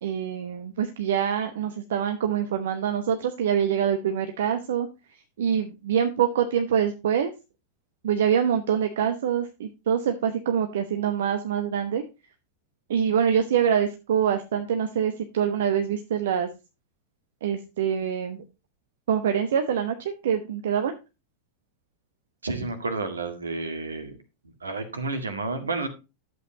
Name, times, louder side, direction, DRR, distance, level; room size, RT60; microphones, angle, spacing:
voice 1, 0.0-4.9 5.4-7.3 8.0-12.0 12.9-16.5 17.4-18.4 19.1-20.9, right 8 dB, 60° right, 7 dB, 0.9 m, -25 dB
voice 2, 22.4-24.2 24.6-25.9, right 3 dB, 75° right, 7 dB, 1.9 m, -30 dB
12.0 x 8.0 x 2.9 m, 0.27 s
figure-of-eight pair, 90°, 0 cm